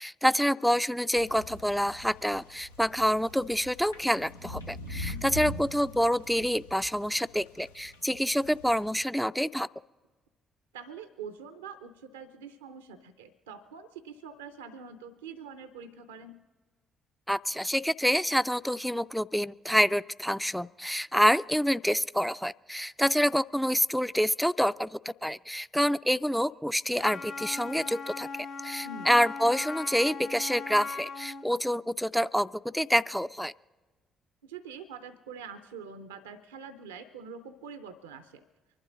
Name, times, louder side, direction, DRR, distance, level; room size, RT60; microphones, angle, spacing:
voice 1, 0.0-9.7 17.3-33.5, equal, ahead, 16 dB, 0.4 m, -27 dB
sound 1, 1.1-9.0, left 2 dB, 90° left, 0.5 m, -42 dB
voice 2, 5.1-5.4 10.7-16.4 28.8-29.1 34.4-38.4, right 5 dB, 80° right, 11 dB, 0.5 m, -45 dB
Wind instrument woodwind instrument, 27.0-31.5, left 4 dB, 60° left, 1.1 m, -39 dB
24.5 x 12.0 x 3.8 m, 1.3 s
figure-of-eight pair, 45°, 0 cm